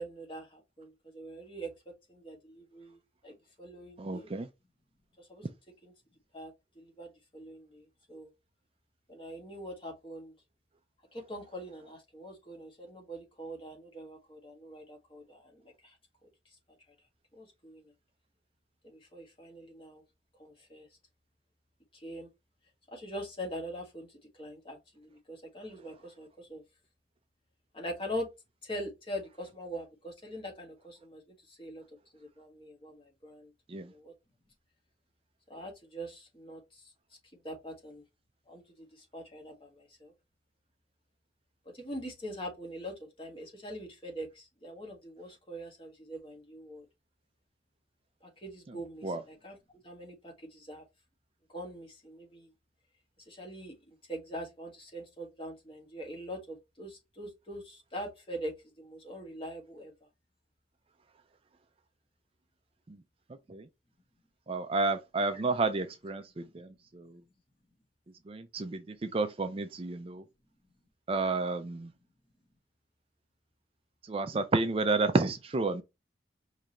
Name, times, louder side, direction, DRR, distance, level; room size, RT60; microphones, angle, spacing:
voice 1, 0.0-1.7 2.1-4.3 5.2-5.4 5.8-5.9 6.3-7.1 7.3-8.3 9.1-10.3 11.1-15.9 17.4-17.9 18.8-20.0 20.4-20.9 21.9-22.3 22.9-24.1 24.4-26.6 27.7-28.3 28.6-31.8 32.1-33.5 33.9-34.1 35.5-36.8 37.4-38.0 38.5-38.9 39.1-40.1 41.7-46.8 48.4-49.6 49.8-50.8 51.5-52.5 53.3-59.9, equal, 30° left, 1.6 m, -43 dB
voice 2, 4.0-4.5 33.7-33.9 49.0-49.2 63.5-63.7 64.5-66.7 66.9-67.2 68.3-70.2 71.1-71.9 74.1-75.8, right 3 dB, 30° right, 0.4 m, -31 dB
5.1 x 3.2 x 2.9 m
head